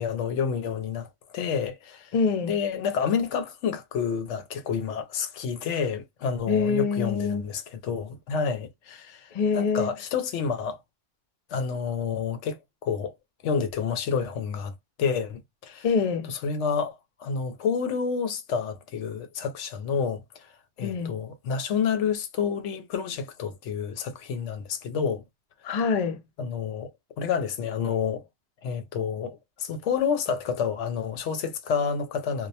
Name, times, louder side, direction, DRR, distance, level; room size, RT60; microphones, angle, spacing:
voice 1, 0.0-2.1 2.5-10.8 11.5-13.2 13.4-14.7 15.0-15.9 16.3-20.5 20.8-25.2 25.7-25.8 26.4-26.9 27.2-28.2 28.6-32.5, left 6 dB, 75° left, 0.9 m, -29 dB
voice 2, 2.1-2.5 6.5-7.5 9.3-9.9 15.8-16.3 20.8-21.1 25.6-26.2, left 5 dB, 60° left, 0.4 m, -25 dB
2.3 x 2.1 x 2.7 m
omnidirectional pair, 1.3 m